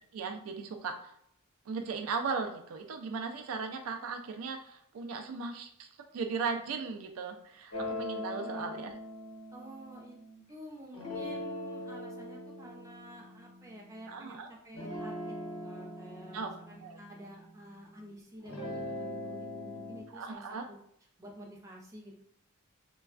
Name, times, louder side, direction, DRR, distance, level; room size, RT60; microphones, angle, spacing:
voice 1, 0.1-1.1 1.7-5.9 6.1-8.9 14.1-14.5 16.3-16.5 16.8-17.0 20.1-20.6, right 5 dB, 80° right, 6 dB, 0.4 m, -37 dB
sound 1, 7.7-10.4 10.9-14.3 14.7-17.9 18.4-20.0, left 1 dB, 85° left, 0.9 m, -41 dB
voice 2, 8.5-8.8 9.5-10.2 10.5-20.8 21.2-22.2, equal, 15° right, -2 dB, 0.5 m, -50 dB
3.1 x 2.3 x 2.4 m, 0.69 s
head